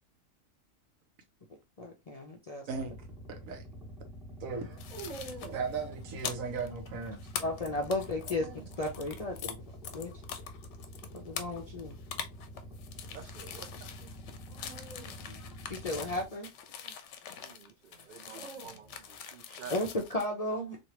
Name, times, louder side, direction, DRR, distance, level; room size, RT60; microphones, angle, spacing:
voice 1, 1.8-2.7 7.4-8.5 8.8-9.6 9.9-10.1 11.1-12.0 15.3-16.5 19.7-20.8, left 1 dB, 55° left, 0.4 m, -34 dB
sound 1, 2.7-16.3, equal, ahead, 1.1 m, -47 dB
sound 2, 2.9-3.0 4.5-5.8 7.9-8.9 11.3-11.7 14.5-16.8 17.9-19.2, right 3 dB, 35° right, 0.7 m, -49 dB
voice 2, 3.3-3.6 4.4-4.7 5.5-7.2, right 5 dB, 85° right, 1.2 m, -36 dB
sound 3, 4.8-9.5 9.8-20.3, left 8 dB, 70° left, 0.8 m, -43 dB
voice 3, 13.1-14.1 17.4-19.8, right 8 dB, 70° right, 0.5 m, -50 dB
3.2 x 2.6 x 2.8 m
omnidirectional pair, 1.4 m